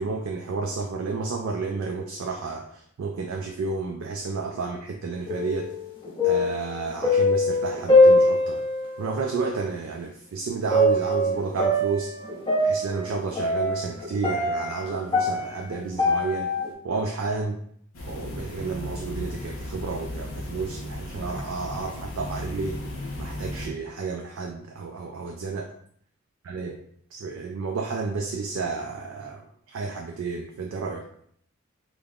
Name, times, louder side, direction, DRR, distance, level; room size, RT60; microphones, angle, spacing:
voice 1, 0.0-5.7 6.2-8.6 9.0-12.1 12.6-16.5 16.8-17.6 18.0-22.8 23.2-25.7 26.4-26.8 27.1-31.0, right 4 dB, 70° right, 3 dB, 0.3 m, -31 dB
sound 1, 5.2-5.8 6.0-8.9 9.6-9.7 10.7-16.7, left 1 dB, 25° left, 0.6 m, -22 dB
sound 2, 17.9-23.7, left 1 dB, 75° left, 0.7 m, -35 dB
5.1 x 2.1 x 2.3 m, 0.66 s
head